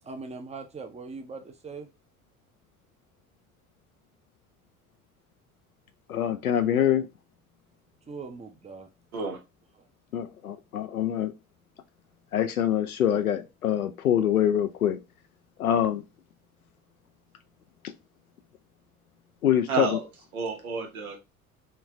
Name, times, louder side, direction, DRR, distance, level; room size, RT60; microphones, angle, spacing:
voice 1, 0.0-1.9 8.1-8.9 9.8-9.9, right 4 dB, 15° right, 0.7 m, -40 dB
voice 2, 6.1-7.1 10.1-11.3 12.3-15.0 15.6-16.0 19.4-20.0, left 10 dB, 85° left, 0.6 m, -25 dB
voice 3, 19.7-20.1 20.3-21.2, right 5 dB, 75° right, 1.2 m, -30 dB
3.2 x 3.0 x 3.6 m
figure-of-eight pair, 60°, 43 cm